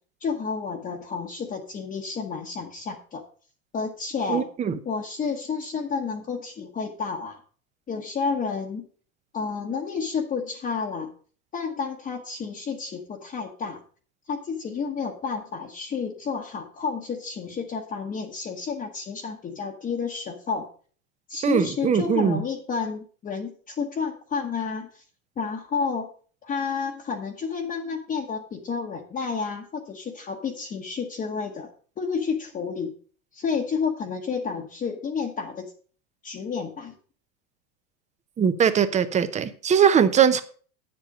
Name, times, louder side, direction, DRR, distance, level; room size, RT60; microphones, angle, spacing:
voice 1, 0.2-3.2 3.7-4.5 4.8-7.4 7.9-8.9 9.3-11.1 11.5-13.8 14.3-20.6 21.3-25.0 25.4-26.1 26.4-31.7 32.0-32.9 33.3-35.7 36.2-36.9, left 5 dB, 20° left, 1.1 m, -30 dB
voice 2, 4.3-4.8 21.4-22.4 38.4-40.4, right 8 dB, 15° right, 0.7 m, -21 dB
9.2 x 7.7 x 5.2 m
supercardioid pair, 135°, 42 cm